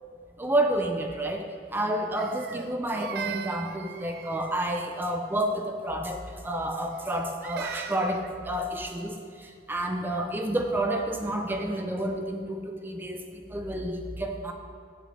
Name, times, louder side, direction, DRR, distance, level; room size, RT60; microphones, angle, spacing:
voice 1, 0.4-1.4 1.7-13.2 13.5-14.5, right 1 dB, 10° right, 3 dB, 0.5 m, -30 dB
Crying sobbing, 2.2-4.7 6.9-8.4, right 7 dB, 60° right, 0.4 m, -39 dB
8.0 x 6.7 x 6.3 m, 2.4 s
head